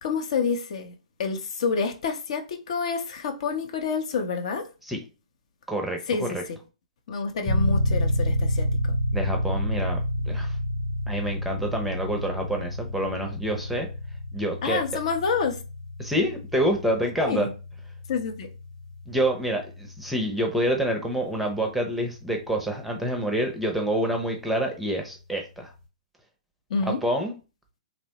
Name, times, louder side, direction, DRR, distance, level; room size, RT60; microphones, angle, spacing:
voice 1, 0.0-0.9 1.2-4.7 6.1-6.6 7.1-9.0 14.6-15.6 17.2-17.5 18.1-18.5 26.7-27.0, left 5 dB, 55° left, 0.6 m, -28 dB
voice 2, 5.7-6.4 9.1-10.0 10.3-10.6 11.1-13.9 14.3-14.8 16.0-17.5 19.1-25.7 26.8-27.3, right 1 dB, ahead, 0.6 m, -27 dB
sound 1, 7.5-21.9, left 1 dB, 25° left, 0.8 m, -29 dB
3.0 x 2.1 x 2.8 m
hypercardioid pair, 125°, 4 cm